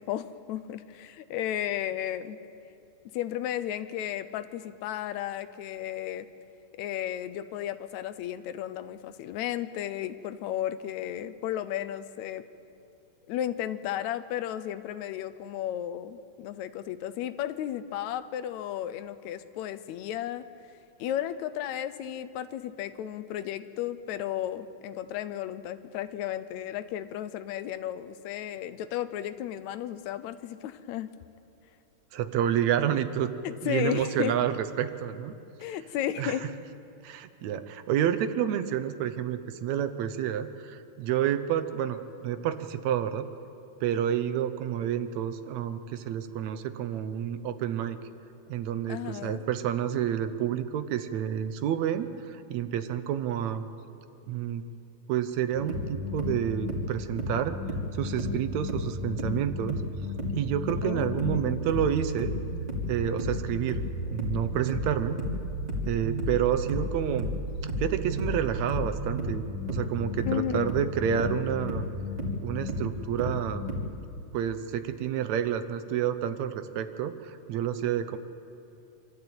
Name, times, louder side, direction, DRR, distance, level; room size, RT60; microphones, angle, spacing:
voice 1, 0.0-2.4 3.1-6.3 6.8-12.4 13.3-20.4 21.0-31.1 33.4-34.4 35.6-36.5 48.9-49.4 60.8-61.7 70.3-70.7, left 11 dB, 80° left, 13 dB, 1.9 m, -34 dB
voice 2, 32.1-33.3 33.6-35.3 36.2-36.3 37.0-43.3 43.8-48.0 48.5-53.6 54.3-54.7 55.1-57.6 57.9-59.8 60.4-62.3 62.9-63.8 64.1-65.2 65.9-67.3 67.8-71.9 72.4-73.6 74.3-78.2, right 9 dB, 75° right, 10 dB, 2.1 m, -29 dB
sound 1, 55.5-73.9, left 1 dB, 15° right, 2.4 m, -33 dB
25.5 x 12.5 x 8.8 m, 2.6 s
omnidirectional pair, 3.3 m